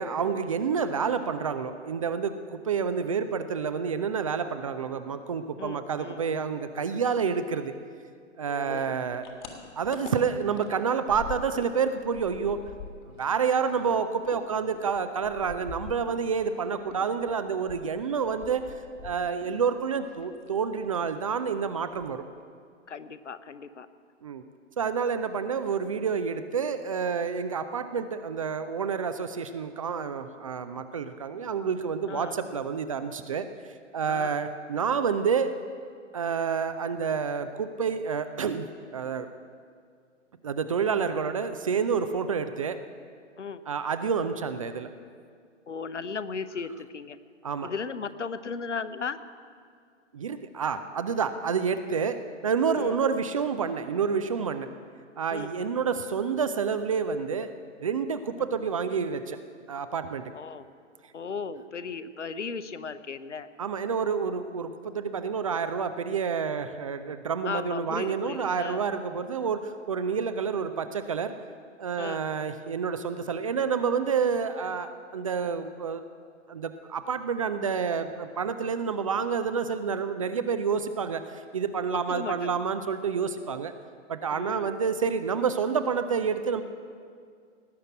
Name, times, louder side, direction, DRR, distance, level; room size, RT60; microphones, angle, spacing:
voice 1, 0.0-7.7 8.4-9.3 9.8-12.6 13.1-18.6 19.0-22.2 24.2-24.4 24.8-33.5 33.9-35.6 36.1-38.7 38.9-39.3 40.4-42.8 43.7-44.9 47.4-47.7 50.1-54.7 55.2-57.5 57.8-59.4 59.7-60.2 63.6-71.3 71.8-76.0 76.5-83.7 84.1-86.6, right 6 dB, 30° right, 10 dB, 0.4 m, -29 dB
voice 2, 5.6-6.2 8.5-9.0 22.9-23.9 32.1-32.4 34.1-34.4 43.4-43.6 45.7-47.2 47.6-49.2 52.7-53.0 55.3-55.5 60.3-60.7 61.1-63.5 67.4-68.8 72.0-72.2 81.9-82.5 84.3-84.7, left 5 dB, 70° left, 13 dB, 0.8 m, -36 dB
sound 1, 8.8-11.8 12.0-16.5 16.9-19.6 19.9-20.6 20.9-21.1 21.5-21.6 21.8-22.4, left 6 dB, 40° left, 1.8 m, -45 dB
18.0 x 6.5 x 8.8 m, 2.2 s
figure-of-eight pair, 120°, 37 cm